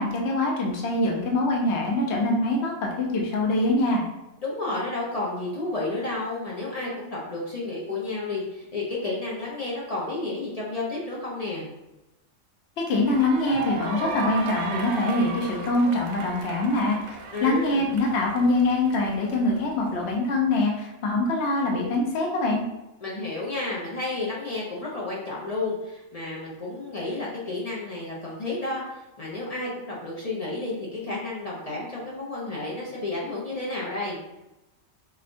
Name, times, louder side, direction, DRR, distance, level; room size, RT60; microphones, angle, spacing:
voice 1, 0.0-4.0 12.9-22.6, left 2 dB, 60° left, -1 dB, 0.9 m, -24 dB
voice 2, 4.4-11.7 17.3-17.9 23.0-28.8 29.2-34.2, left 2 dB, 45° left, -5 dB, 0.5 m, -31 dB
sound 1, 13.0-20.1, right 4 dB, 90° right, 1.0 m, -36 dB
4.8 x 2.3 x 2.5 m, 0.98 s
omnidirectional pair, 1.4 m